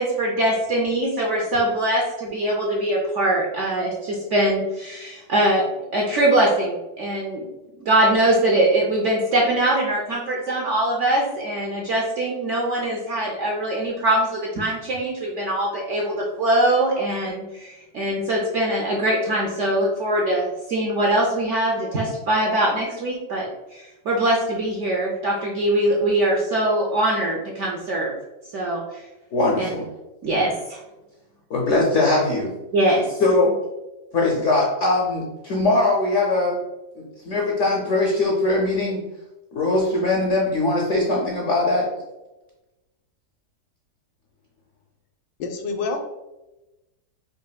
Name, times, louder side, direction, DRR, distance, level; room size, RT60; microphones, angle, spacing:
voice 1, 0.0-5.7 5.9-7.5 7.8-28.1 28.5-29.0 29.6-29.7 30.2-30.8 32.7-33.1, right 1 dB, 75° right, -2 dB, 0.6 m, -22 dB
voice 2, 29.3-29.9 31.5-32.5 33.2-33.5 34.1-36.6 37.0-39.0 39.5-41.9, left 2 dB, 70° left, -2 dB, 0.7 m, -21 dB
voice 3, 45.4-46.0, left 4 dB, 85° left, 4 dB, 1.3 m, -27 dB
4.9 x 2.6 x 2.2 m, 1.0 s
omnidirectional pair, 1.8 m